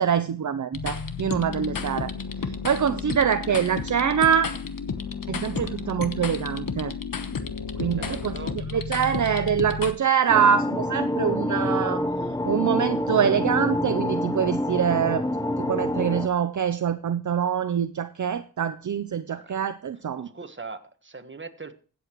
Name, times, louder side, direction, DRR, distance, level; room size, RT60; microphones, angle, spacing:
voice 1, 0.0-2.1 2.4-4.5 5.3-7.0 7.8-8.3 8.7-12.0 12.5-15.3 15.6-20.3, right 8 dB, 55° right, 11 dB, 0.7 m, -24 dB
sound 1, 0.7-9.9, left 5 dB, 65° left, 1.2 m, -32 dB
voice 2, 7.9-8.6 19.3-19.5 20.1-21.7, right 4 dB, 30° right, 8 dB, 1.4 m, -41 dB
sound 2, 10.3-16.3, left 1 dB, 10° left, 0.9 m, -27 dB
16.0 x 8.0 x 3.0 m, 0.40 s
cardioid pair, 55°, 37 cm